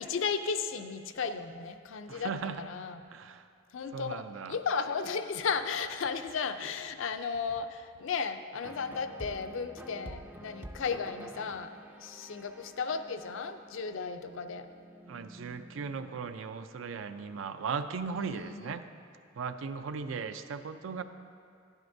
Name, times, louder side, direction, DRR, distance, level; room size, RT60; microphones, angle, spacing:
voice 1, 0.0-3.1 3.7-14.7 18.1-18.7, left 5 dB, 80° left, 9 dB, 0.5 m, -35 dB
voice 2, 2.1-2.6 3.1-3.5 3.9-4.6 15.1-18.8 19.4-21.0, right 5 dB, 85° right, 10 dB, 0.4 m, -37 dB
sound 1, 8.6-18.2, right 1 dB, 10° right, 0.3 m, -50 dB
11.0 x 10.5 x 2.7 m, 2.3 s
head